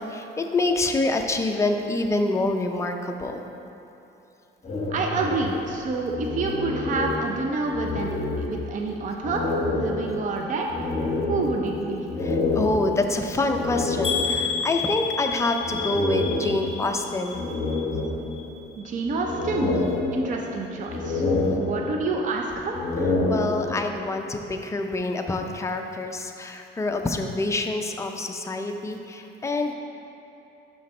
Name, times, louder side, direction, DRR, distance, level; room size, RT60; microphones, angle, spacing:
voice 1, 0.1-3.5 12.5-17.4 23.3-29.7, left 2 dB, 15° left, 4 dB, 0.5 m, -26 dB
sound 1, 4.6-7.5 7.7-8.8 9.2-14.7 15.6-16.9 17.3-18.7 19.1-20.6 20.9-22.2 22.6-24.0, left 2 dB, 40° left, 1.4 m, -28 dB
voice 2, 4.9-9.4 9.7-10.7 11.3-12.1 18.8-19.7 20.1-21.2 21.5-22.8, right 3 dB, 40° right, 1 dB, 0.6 m, -28 dB
sound 2, 14.0-18.0 18.3-18.9 19.4-19.5 19.9-20.0, left 6 dB, ahead, 1.3 m, -31 dB
6.2 x 5.9 x 4.2 m, 2.9 s
cardioid pair, 125°, 19 cm